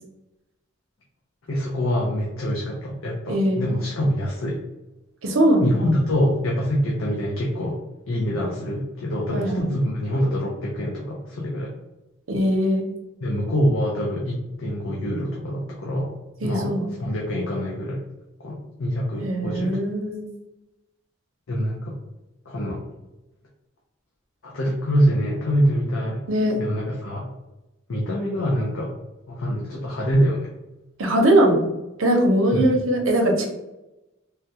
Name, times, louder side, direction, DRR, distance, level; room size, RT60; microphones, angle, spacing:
voice 1, 1.5-4.6 5.6-11.7 13.2-16.2 16.4-18.0 18.4-19.8 21.5-22.0 22.5-22.9 24.4-26.2 26.6-27.3 27.9-28.9 29.3-30.5 32.5-32.6, equal, 80° left, -3 dB, 0.6 m, -25 dB
voice 2, 3.3-3.6 5.2-5.7 9.3-9.7 12.3-12.8 16.4-16.9 19.2-20.2 26.3-26.6 31.0-31.7 32.0-33.5, right 1 dB, 80° right, 2 dB, 0.7 m, -20 dB
3.5 x 2.3 x 2.8 m, 0.97 s
head